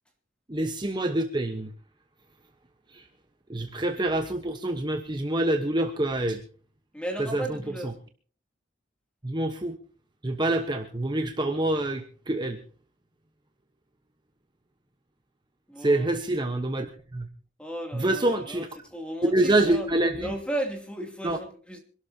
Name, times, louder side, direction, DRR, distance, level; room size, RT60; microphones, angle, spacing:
voice 1, 0.5-1.7 2.9-3.0 3.5-6.4 7.2-7.4 9.2-9.8 10.2-12.6 15.8-16.9 17.1-17.3 17.9-18.7 19.2-20.3 21.2-21.4, right 1 dB, 25° right, 5 dB, 1.1 m, -26 dB
voice 2, 6.9-7.9 15.7-16.1 17.6-19.9 20.2-21.8, right 1 dB, 5° left, 2 dB, 2.7 m, -35 dB
25.5 x 12.5 x 2.8 m, 0.42 s
head